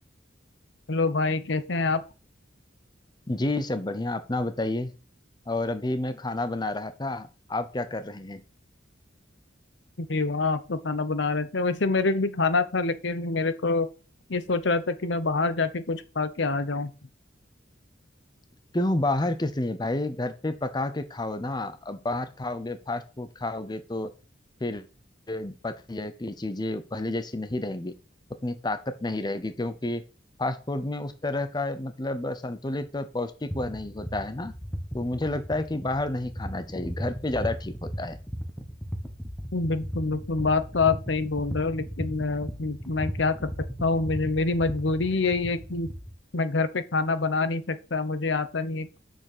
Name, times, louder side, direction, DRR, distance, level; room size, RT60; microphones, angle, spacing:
voice 1, 0.9-2.0 10.0-13.9 14.3-16.9 39.5-43.5 43.8-45.9 46.3-49.0, left 3 dB, 70° left, 0.9 m, -26 dB
voice 2, 3.3-4.9 5.5-8.4 18.7-24.1 24.6-24.8 25.3-27.9 28.4-30.0 30.4-34.5 34.9-38.2, left 2 dB, 20° left, 0.7 m, -30 dB
sound 1, 33.5-46.1, equal, 5° left, 1.3 m, -36 dB
6.7 x 6.3 x 6.6 m
head